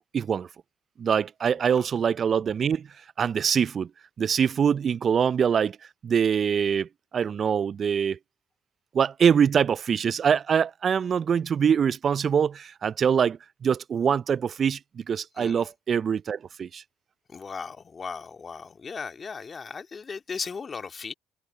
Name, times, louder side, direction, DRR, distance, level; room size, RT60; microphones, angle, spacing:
voice 1, 0.1-0.5 1.0-2.9 3.2-3.9 4.2-5.8 6.0-8.2 8.9-16.8, right 7 dB, 50° right, 0.4 m, -24 dB
voice 2, 17.3-21.1, left 5 dB, 40° left, 2.1 m, -37 dB
hypercardioid pair, 55°, 0 cm